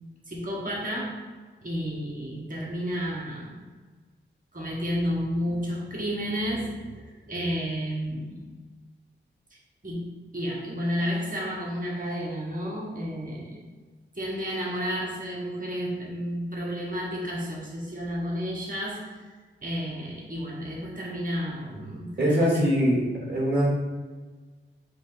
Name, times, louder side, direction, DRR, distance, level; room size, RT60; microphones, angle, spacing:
voice 1, 0.3-1.2 1.6-3.6 4.5-8.4 9.8-13.7 14.1-19.2 19.6-22.7, equal, 45° right, -4 dB, 1.4 m, -31 dB
voice 2, 22.2-23.0 23.3-23.7, equal, 60° right, -6 dB, 1.2 m, -22 dB
4.7 x 2.6 x 3.9 m, 1.3 s
wide cardioid pair, 80°, 20 cm